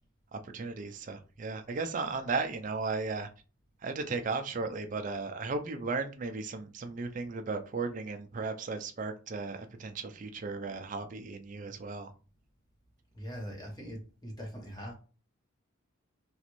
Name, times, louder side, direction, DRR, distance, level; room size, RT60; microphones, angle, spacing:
voice 1, 0.3-3.3 3.8-12.1, right 4 dB, 35° right, 6 dB, 0.4 m, -35 dB
voice 2, 13.1-14.9, equal, 20° left, -1 dB, 0.9 m, -41 dB
3.1 x 2.5 x 3.0 m, 0.35 s
head